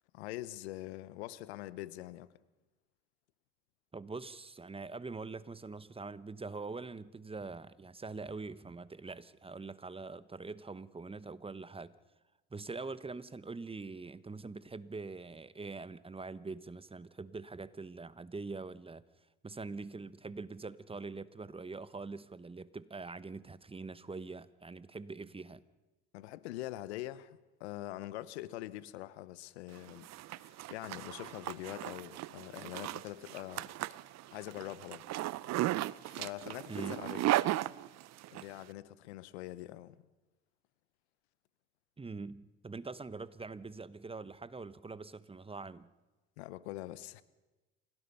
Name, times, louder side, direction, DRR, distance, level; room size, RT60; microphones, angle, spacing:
voice 1, 0.1-2.3 26.1-33.7 34.3-35.0 36.0-37.2 38.3-40.0 46.4-47.2, left 15 dB, 85° left, 1.0 m, -44 dB
voice 2, 3.9-11.9 12.5-19.0 19.4-25.6 36.7-37.0 42.0-45.9, right 3 dB, 15° right, 1.1 m, -44 dB
Zipper (clothing), 29.8-38.4, right 16 dB, 55° right, 0.7 m, -36 dB
27.5 x 17.5 x 5.7 m
hypercardioid pair, 70°, 32 cm